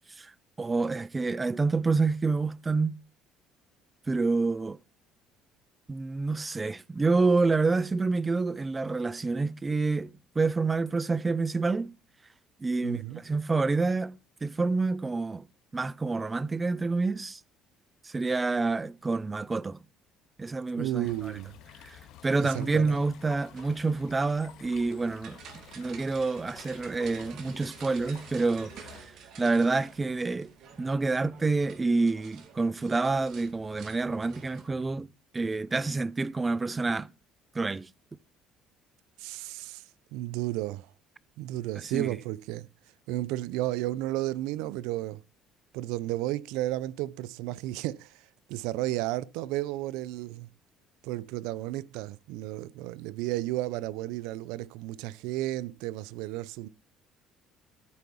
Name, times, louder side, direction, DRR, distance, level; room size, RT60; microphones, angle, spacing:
voice 1, 0.6-3.0 4.1-4.8 5.9-11.9 12.6-15.5 15.7-17.4 18.0-19.8 20.4-21.3 21.8-25.4 25.8-28.9 29.4-30.5 30.8-35.1 35.3-37.1 37.5-37.9 41.9-42.1, right 3 dB, 20° right, 0.6 m, -28 dB
voice 2, 12.8-13.2 20.8-21.6 22.4-23.0 39.2-39.8 40.1-40.9 41.4-42.7 43.1-45.2 45.7-50.5 51.0-56.7, right 16 dB, 85° right, 0.5 m, -33 dB
sound 1, 21.0-29.0, left 10 dB, 75° left, 1.9 m, -52 dB
sound 2, 23.6-34.7, right 6 dB, 60° right, 2.4 m, -50 dB
14.0 x 4.7 x 7.0 m
supercardioid pair, 95°, 0 cm